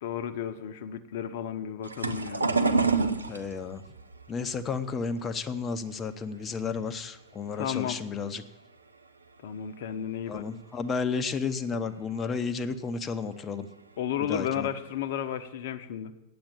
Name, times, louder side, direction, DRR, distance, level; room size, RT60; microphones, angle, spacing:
voice 1, 0.0-2.5 7.6-8.0 9.4-10.4 14.0-16.1, left 9 dB, 55° left, 11 dB, 0.7 m, -33 dB
sound 1, 1.8-7.0 7.3-8.2 8.7-9.0 9.3-9.4 10.6-10.7 11.2-11.3 11.9-12.0 12.2-12.5 13.7-13.9 14.5-14.6 15.0-15.4, right 4 dB, 80° right, 0.6 m, -29 dB
voice 2, 3.3-3.8 4.3-8.4 10.3-13.7 14.2-14.7, left 5 dB, 25° left, 12 dB, 0.7 m, -32 dB
8.8 x 7.8 x 9.1 m, 1.0 s
figure-of-eight pair, 90°, 0 cm